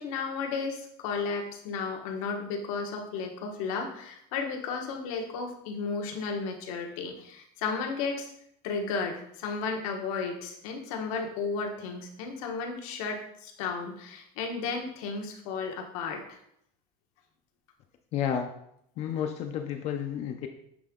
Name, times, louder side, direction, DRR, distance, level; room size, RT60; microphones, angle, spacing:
voice 1, 0.0-8.3 8.6-16.4, left 4 dB, 85° left, 2 dB, 1.2 m, -33 dB
voice 2, 18.1-18.5 19.0-20.5, left 9 dB, 40° left, 4 dB, 0.4 m, -31 dB
7.6 x 3.7 x 3.6 m, 0.74 s
cardioid pair, 170°, 17 cm